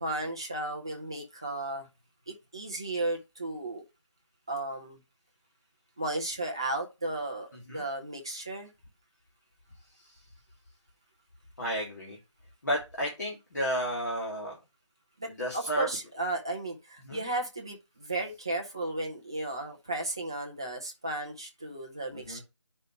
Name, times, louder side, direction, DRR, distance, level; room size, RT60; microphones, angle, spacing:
voice 1, 0.0-1.9 2.3-3.8 4.5-5.0 6.0-8.7 15.2-22.4, right 2 dB, 10° right, 0.6 m, -34 dB
voice 2, 11.6-12.2 12.6-14.6 15.4-15.9 17.0-17.2 22.1-22.4, equal, 35° left, 2.5 m, -32 dB
8.3 x 5.4 x 3.0 m
figure-of-eight pair, 165°, 16 cm